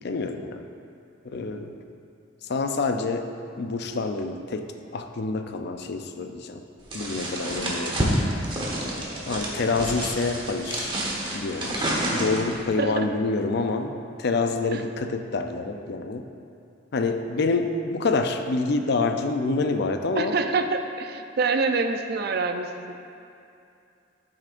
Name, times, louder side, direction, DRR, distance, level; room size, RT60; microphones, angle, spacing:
voice 1, 0.0-0.6 1.2-1.7 2.5-3.2 3.6-4.7 4.9-6.6 6.9-8.2 9.3-11.0 11.3-13.9 14.2-16.2 16.9-20.3, left 3 dB, 60° left, 6 dB, 0.5 m, -27 dB
sound 1, 6.9-12.6, right 1 dB, 25° right, 1.1 m, -29 dB
voice 2, 20.2-23.0, right 4 dB, 55° right, 7 dB, 0.4 m, -26 dB
12.0 x 6.4 x 2.5 m, 2.6 s
head